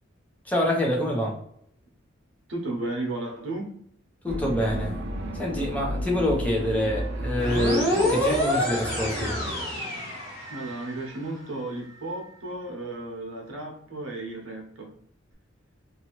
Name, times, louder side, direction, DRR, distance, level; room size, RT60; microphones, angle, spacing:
voice 1, 0.4-1.4 4.2-5.0 5.3-9.4, left 1 dB, 5° left, -2 dB, 0.7 m, -26 dB
voice 2, 2.5-3.7 10.5-14.9, right 2 dB, 85° right, -1 dB, 0.8 m, -34 dB
sound 1, 4.3-9.6, right 1 dB, 55° right, 0.5 m, -33 dB
sound 2, 7.4-10.9, left 1 dB, 15° right, 1.4 m, -27 dB
2.7 x 2.4 x 2.9 m, 0.67 s
head